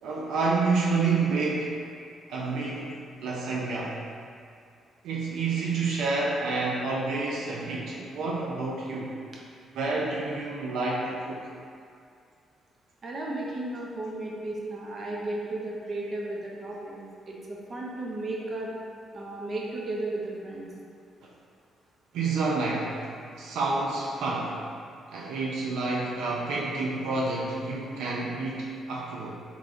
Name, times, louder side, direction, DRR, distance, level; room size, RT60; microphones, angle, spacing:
voice 1, 0.0-1.8 2.3-4.0 5.0-9.2 9.7-11.4 22.1-24.6 25.1-29.3, right 3 dB, 85° right, -3 dB, 0.4 m, -29 dB
voice 2, 13.0-18.7 19.1-20.7, right 2 dB, 40° right, -3 dB, 0.6 m, -34 dB
3.5 x 3.3 x 2.5 m, 2.3 s
cardioid pair, 90°, 0 cm